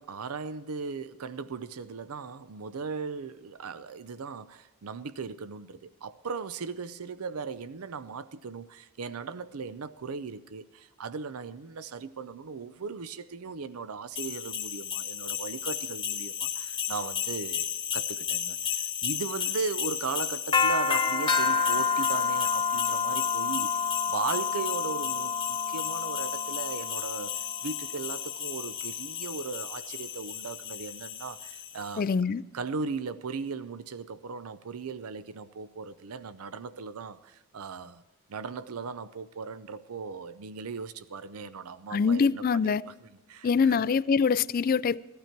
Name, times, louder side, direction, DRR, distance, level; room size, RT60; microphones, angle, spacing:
voice 1, 0.0-17.7 17.9-32.0 32.5-38.0 38.3-43.8, right 5 dB, 85° right, 0.6 m, -38 dB
sound 1, 14.2-31.9, left 6 dB, 20° left, 1.1 m, -30 dB
voice 2, 32.0-32.4 41.9-42.8 43.4-45.0, left 5 dB, 40° left, 0.3 m, -24 dB
17.0 x 12.0 x 4.5 m
head